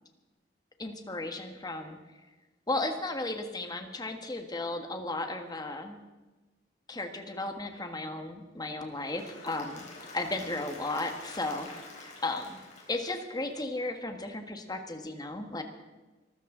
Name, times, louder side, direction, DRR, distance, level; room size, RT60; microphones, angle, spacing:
voice 1, 0.8-2.0 2.7-6.0 6.9-9.8 10.1-12.6 12.9-15.6, left 2 dB, 20° left, 5 dB, 1.6 m, -35 dB
Applause / Crowd, 8.8-13.8, left 3 dB, 35° left, 4.2 m, -48 dB
23.0 x 13.5 x 3.9 m, 1.2 s
head